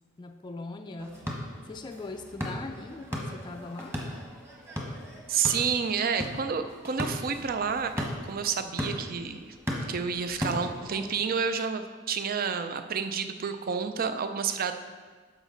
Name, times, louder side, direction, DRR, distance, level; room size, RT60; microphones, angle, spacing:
voice 1, 0.2-1.3 1.6-4.0, left 3 dB, 25° left, 4 dB, 0.4 m, -40 dB
sound 1, 1.0-11.1, equal, 15° right, 1.3 m, -37 dB
voice 2, 5.3-9.6 9.9-14.7, right 6 dB, 50° right, 9 dB, 0.5 m, -30 dB
12.5 x 5.0 x 3.9 m, 1.5 s
head